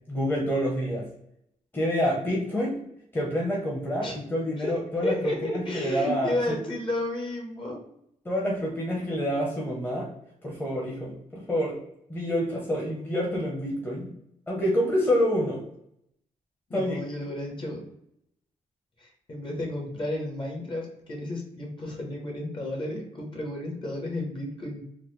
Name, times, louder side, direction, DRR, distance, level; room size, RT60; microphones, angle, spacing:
voice 1, 0.1-1.1 1.7-2.8 3.1-6.6 8.2-10.1 10.4-11.8 12.1-14.1 14.5-15.6 16.7-17.0, equal, 15° left, -3 dB, 0.9 m, -27 dB
voice 2, 5.0-7.8 16.7-17.8 19.0-24.8, left 1 dB, 40° left, 0 dB, 1.1 m, -32 dB
3.9 x 2.1 x 3.1 m, 0.75 s
cardioid pair, 95°, 13 cm